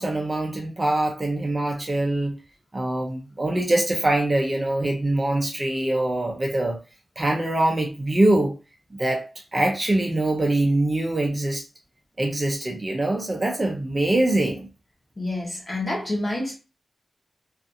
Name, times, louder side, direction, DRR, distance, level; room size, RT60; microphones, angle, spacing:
voice 1, 0.0-2.4 2.7-6.8 7.2-8.5 8.9-11.6 12.2-14.7, right 1 dB, 25° right, 0.5 m, -23 dB
voice 2, 15.2-16.6, left 1 dB, 30° left, 0.9 m, -28 dB
2.5 x 2.4 x 2.5 m
wide cardioid pair, 160°, 0 cm